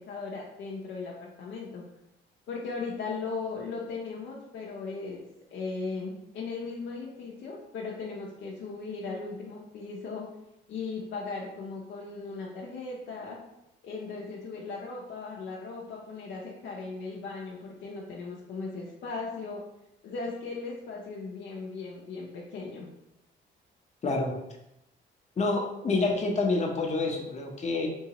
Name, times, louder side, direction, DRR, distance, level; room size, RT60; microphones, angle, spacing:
voice 1, 0.0-1.8 2.5-5.2 5.5-10.2 10.7-13.4 13.8-19.6 20.0-22.9, left 4 dB, 70° left, -3 dB, 0.6 m, -37 dB
voice 2, 24.0-24.3 25.4-27.9, left 3 dB, 35° left, 1 dB, 0.8 m, -27 dB
3.8 x 2.7 x 2.9 m, 0.86 s
cardioid pair, 90°, 20 cm